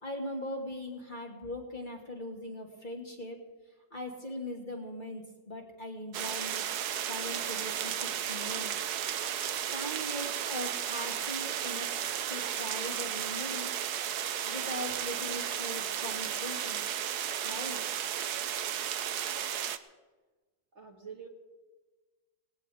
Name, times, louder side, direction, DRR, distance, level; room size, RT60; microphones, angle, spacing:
voice 1, 0.0-3.4 3.9-6.6 7.0-8.7 9.7-12.0 12.3-13.7 14.4-16.8 17.4-17.8, left 1 dB, 25° left, 0 dB, 2.1 m, -40 dB
sound 1, 6.1-19.8, right 9 dB, 65° right, 1.2 m, -34 dB
voice 2, 20.7-21.3, right 6 dB, 40° right, 1 dB, 1.7 m, -46 dB
19.0 x 18.0 x 3.5 m, 1.3 s
omnidirectional pair, 2.0 m